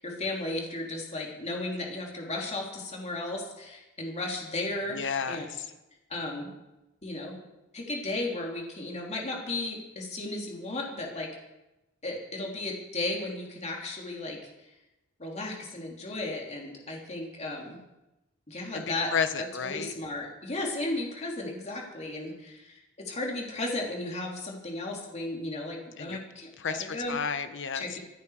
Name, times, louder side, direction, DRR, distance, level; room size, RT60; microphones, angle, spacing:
voice 1, 0.0-5.5 6.1-6.5 7.0-7.4 7.7-11.3 12.0-14.4 15.2-17.8 18.5-19.1 19.6-27.2 27.7-28.0, left 2 dB, 30° left, -1 dB, 3.2 m, -35 dB
voice 2, 4.9-5.7 18.7-19.9 26.0-26.2 26.6-27.9, left 6 dB, 60° left, 10 dB, 1.1 m, -32 dB
25.5 x 9.5 x 4.9 m, 0.97 s
head